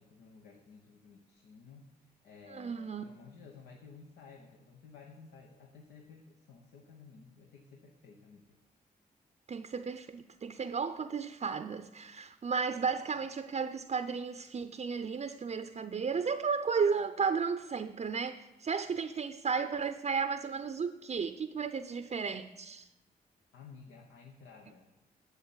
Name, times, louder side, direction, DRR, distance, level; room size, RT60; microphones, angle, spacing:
voice 1, 0.0-8.6 12.8-12.9 13.2-13.3 23.5-24.9, left 5 dB, 85° left, 1.0 m, -54 dB
voice 2, 2.5-3.0 9.5-22.9, right 5 dB, 40° right, 0.6 m, -34 dB
8.2 x 7.0 x 7.4 m
supercardioid pair, 55°, 17 cm